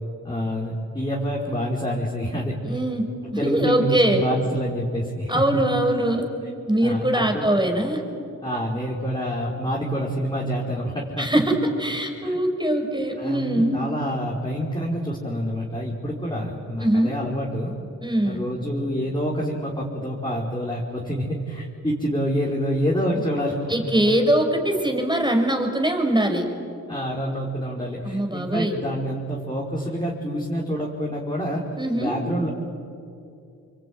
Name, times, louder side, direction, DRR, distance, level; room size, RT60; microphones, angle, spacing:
voice 1, 0.2-2.6 3.4-5.6 6.8-7.5 8.4-11.3 12.2-12.4 13.2-17.7 18.2-24.2 26.9-31.6 31.9-32.5, equal, 15° left, -4 dB, 5.0 m, -27 dB
voice 2, 2.6-4.2 5.3-6.3 6.7-8.0 11.2-13.9 16.8-17.2 18.0-18.4 23.7-26.5 28.0-28.8 31.8-32.1, right 1 dB, 15° right, 4 dB, 5.7 m, -22 dB
25.5 x 23.5 x 9.6 m, 2.6 s
cardioid pair, 45°, 34 cm